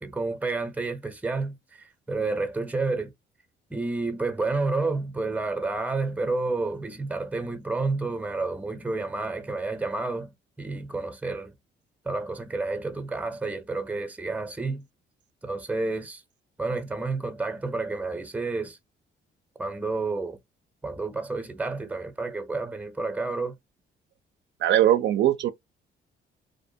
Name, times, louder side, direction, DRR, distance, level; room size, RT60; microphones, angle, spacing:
voice 1, 0.0-3.1 3.7-11.5 12.0-14.9 15.4-16.2 16.6-18.8 19.6-20.4 20.8-23.6, right 3 dB, 5° right, 0.5 m, -30 dB
voice 2, 24.6-25.5, right 12 dB, 65° right, 0.4 m, -20 dB
2.6 x 2.1 x 2.6 m
cardioid pair, 90°, 20 cm